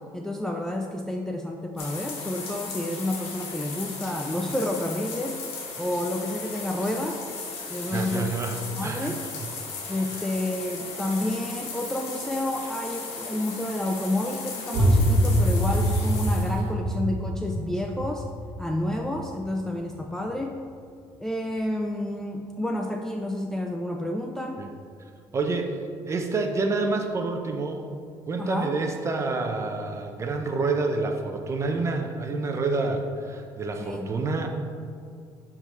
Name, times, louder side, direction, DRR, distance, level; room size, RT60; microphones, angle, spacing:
voice 1, 0.1-5.4 5.8-7.2 7.7-8.3 8.8-9.2 9.9-18.2 18.6-20.6 21.2-24.6 28.4-28.8 33.8-34.1, left 1 dB, 5° left, 2 dB, 0.3 m, -30 dB
sound 1, 1.8-16.7, left 4 dB, 75° left, 1.4 m, -37 dB
voice 2, 7.9-9.1 9.4-9.5 24.6-24.7 25.3-25.7 26.1-27.8 28.3-34.5, right 3 dB, 30° right, 4 dB, 0.7 m, -28 dB
sound 2, 14.7-20.3, equal, 85° right, 1.5 m, -25 dB
9.9 x 3.7 x 3.1 m, 2.3 s
cardioid pair, 120°, 10 cm